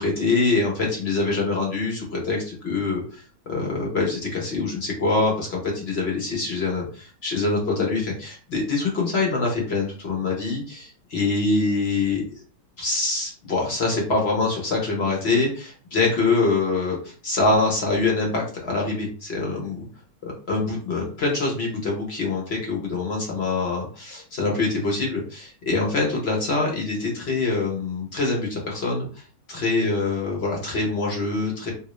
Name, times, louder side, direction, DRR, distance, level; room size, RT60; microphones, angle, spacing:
voice 1, 0.0-12.4 12.8-19.8 20.5-29.2 29.5-31.7, left 3 dB, 45° left, -1 dB, 0.9 m, -24 dB
2.9 x 2.6 x 3.1 m, 0.39 s
omnidirectional pair, 1.9 m